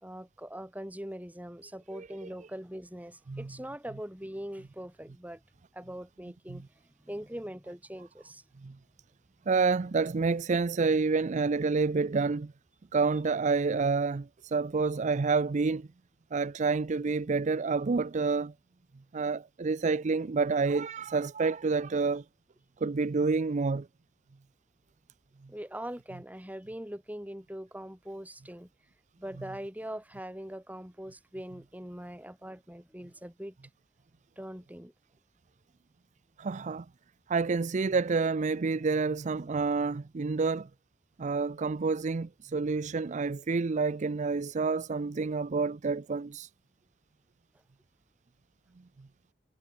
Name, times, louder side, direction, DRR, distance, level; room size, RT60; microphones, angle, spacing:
voice 1, 0.0-5.4 5.7-6.6 7.0-8.4 25.5-28.7 29.2-33.5 34.4-34.9, equal, 10° right, 4.2 m, -42 dB
voice 2, 9.5-12.5 12.9-15.9 16.3-18.5 19.1-22.2 22.8-23.9 36.4-36.9 37.3-40.7 41.2-46.5, right 4 dB, 40° right, 0.5 m, -28 dB
head